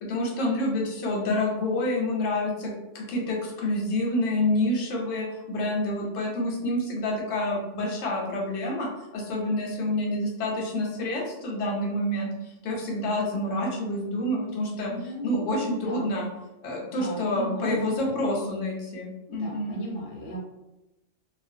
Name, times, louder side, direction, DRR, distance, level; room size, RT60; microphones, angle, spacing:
voice 1, 0.0-16.3 16.6-19.8, left 1 dB, 90° left, -2 dB, 1.0 m, -28 dB
voice 2, 14.8-16.1 16.9-17.8 18.0-18.2 19.3-20.4, equal, 60° left, -2 dB, 0.9 m, -36 dB
2.4 x 2.1 x 2.5 m, 0.96 s
omnidirectional pair, 1.3 m